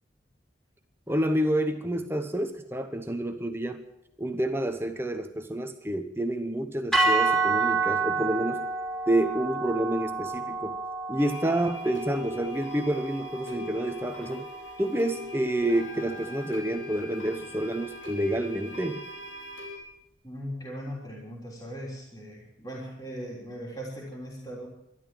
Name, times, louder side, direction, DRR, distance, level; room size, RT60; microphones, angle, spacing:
voice 1, 1.1-3.9 4.2-8.7 9.1-10.7 11.1-14.5 14.8-19.0, right 1 dB, 10° right, 6 dB, 0.9 m, -28 dB
sound 1, 6.9-15.2, right 4 dB, 5° left, 3.2 m, -29 dB
sound 2, 11.2-19.8, left 2 dB, 85° left, 4.7 m, -41 dB
voice 2, 20.2-24.7, equal, 20° left, -3 dB, 3.4 m, -39 dB
12.5 x 12.5 x 9.0 m, 0.83 s
head